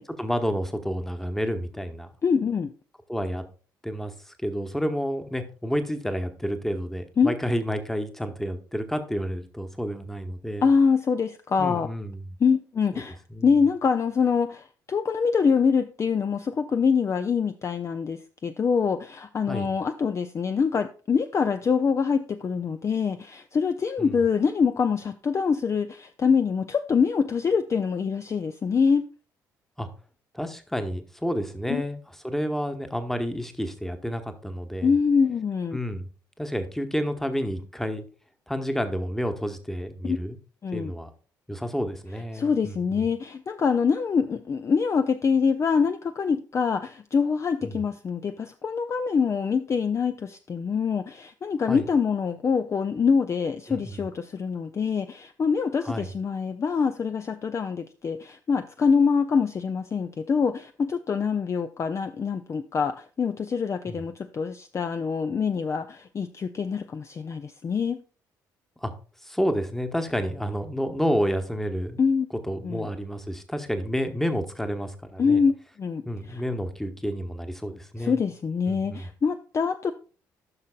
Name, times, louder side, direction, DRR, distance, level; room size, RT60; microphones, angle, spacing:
voice 1, 0.2-2.1 3.1-3.4 3.8-10.7 11.6-12.3 12.9-13.0 13.3-13.5 19.5-19.7 24.0-24.2 29.8-29.9 30.3-34.9 35.7-36.1 36.4-38.0 38.5-40.4 40.7-41.1 41.5-43.1 47.6-47.8 51.7-51.8 53.7-54.0 55.8-56.1 63.9-64.0 68.8-68.9 69.2-72.0 72.4-75.4 76.0-78.2 78.7-79.1, equal, 5° left, 7 dB, 1.1 m, -30 dB
voice 2, 2.2-2.7 7.2-7.3 10.6-11.9 12.4-29.1 31.7-31.8 34.8-35.8 40.0-40.2 40.6-40.9 42.3-68.0 72.0-72.3 72.6-72.9 75.2-75.5 75.8-76.4 78.0-79.9, left 5 dB, 30° left, 9 dB, 0.4 m, -25 dB
14.0 x 6.3 x 2.3 m, 0.39 s
figure-of-eight pair, 45°, 10 cm